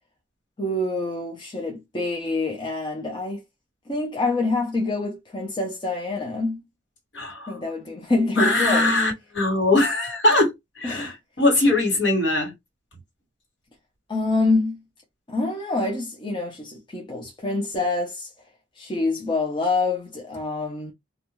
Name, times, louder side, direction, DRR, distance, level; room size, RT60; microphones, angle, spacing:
voice 1, 0.6-3.4 3.9-6.6 7.5-9.0 10.8-11.1 14.1-14.8 15.3-18.3 18.8-20.9, left 2 dB, 25° left, 0.7 m, -26 dB
voice 2, 7.1-7.5 8.4-12.5, left 2 dB, 65° left, 1.7 m, -21 dB
2.6 x 2.2 x 3.0 m
head